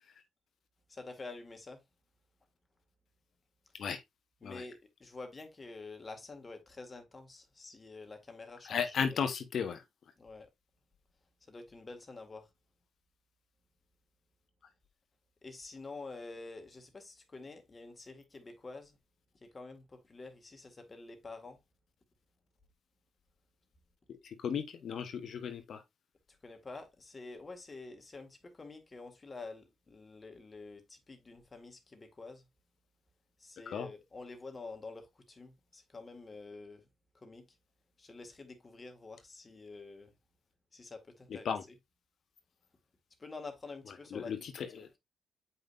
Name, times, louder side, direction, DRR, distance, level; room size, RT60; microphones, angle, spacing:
voice 1, 0.9-1.8 3.8-3.9 4.4-9.2 10.2-10.5 11.5-12.5 15.4-19.0 19.3-21.6 26.3-32.5 33.4-36.8 37.1-37.5 38.0-40.1 40.7-41.8 43.2-45.0, left 3 dB, 35° left, 2.0 m, -48 dB
voice 2, 8.7-9.8 24.2-25.8 33.7-33.9 41.4-41.6 44.1-44.9, left 7 dB, 65° left, 1.1 m, -35 dB
7.6 x 5.3 x 2.6 m
supercardioid pair, 60°, 0 cm